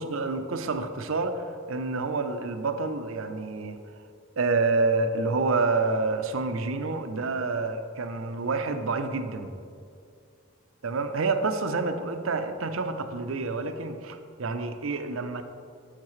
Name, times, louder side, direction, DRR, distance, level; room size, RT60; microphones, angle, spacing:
voice 1, 0.0-3.8 4.4-9.5 10.8-15.4, right 3 dB, 80° right, 8 dB, 0.6 m, -28 dB
12.0 x 6.6 x 3.2 m, 2.3 s
head